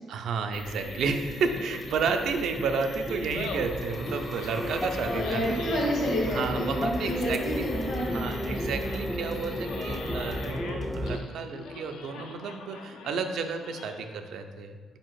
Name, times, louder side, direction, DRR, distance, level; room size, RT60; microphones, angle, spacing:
voice 1, 0.1-5.6 6.3-7.7 8.1-15.0, right 5 dB, 75° right, 6 dB, 0.4 m, -32 dB
sound 1, 0.5-10.5, left 2 dB, 50° left, 0.7 m, -41 dB
sound 2, 1.0-11.2, equal, 10° left, 0.3 m, -34 dB
Laughter, 3.1-14.2, left 4 dB, 90° left, 0.4 m, -44 dB
voice 2, 5.0-8.6, equal, 65° left, -4 dB, 1.2 m, -29 dB
4.1 x 2.8 x 4.5 m, 1.5 s
cardioid pair, 90°, 0 cm